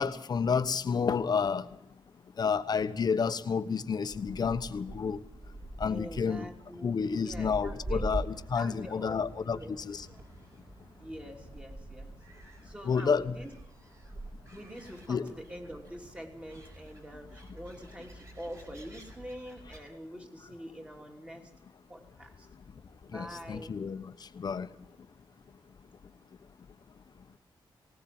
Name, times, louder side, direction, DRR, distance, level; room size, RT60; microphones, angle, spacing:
voice 1, 0.0-1.6 2.4-5.2 5.8-6.5 6.8-10.0 12.8-13.3 15.1-15.3 23.1-24.0 24.4-24.7, left 6 dB, 50° left, 10 dB, 1.1 m, -30 dB
Gull seagull, 4.1-19.8, right 1 dB, 35° right, 4.8 m, -44 dB
voice 2, 5.9-8.1 8.5-9.7 11.0-12.2 12.6-13.5 14.5-21.5 21.9-22.5 23.1-23.7, equal, 10° right, 2 dB, 3.2 m, -45 dB
19.5 x 19.0 x 7.7 m, 0.78 s
wide cardioid pair, 155°, 9 cm